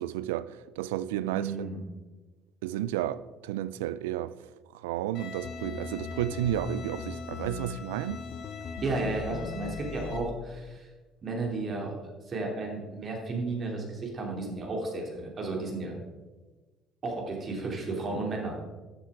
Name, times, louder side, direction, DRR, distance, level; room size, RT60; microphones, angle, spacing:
voice 1, 0.0-1.7 2.6-4.3 4.7-8.2, right 12 dB, 90° right, 0.3 m, -32 dB
voice 2, 1.3-1.8 8.8-10.9 11.2-11.9 12.3-16.0 17.0-18.6, right 3 dB, 45° right, 3.1 m, -33 dB
Bowed string instrument, 5.1-10.2, left 5 dB, 70° left, 1.8 m, -45 dB
sound 1, 5.4-10.8, left 5 dB, 55° left, 0.6 m, -40 dB
13.0 x 7.4 x 3.7 m
hypercardioid pair, 65°, 0 cm